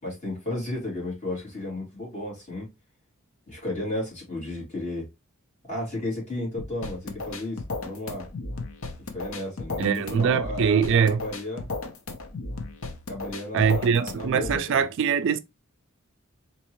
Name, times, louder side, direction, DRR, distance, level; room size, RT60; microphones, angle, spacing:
voice 1, 0.0-2.7 3.5-5.1 5.7-8.3 9.1-11.7 13.1-14.8, left 1 dB, 35° left, 2.6 m, -33 dB
sound 1, 6.6-14.6, left 3 dB, 70° left, 0.8 m, -35 dB
voice 2, 9.8-11.3 13.5-15.4, right 7 dB, 60° right, 0.3 m, -23 dB
4.3 x 2.9 x 2.9 m
head